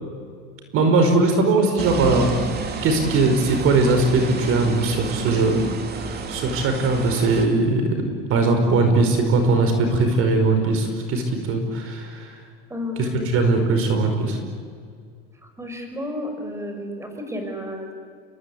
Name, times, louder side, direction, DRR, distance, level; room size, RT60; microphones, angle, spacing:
voice 1, 0.7-5.6 6.0-12.4 13.0-14.4, right 3 dB, 50° right, 6 dB, 5.1 m, -20 dB
sound 1, 1.8-7.5, right 4 dB, 35° right, 3.1 m, -30 dB
voice 2, 12.7-13.3 15.6-17.9, left 1 dB, 10° right, 5 dB, 5.7 m, -32 dB
29.5 x 22.0 x 8.7 m, 2.2 s
supercardioid pair, 120°, 29 cm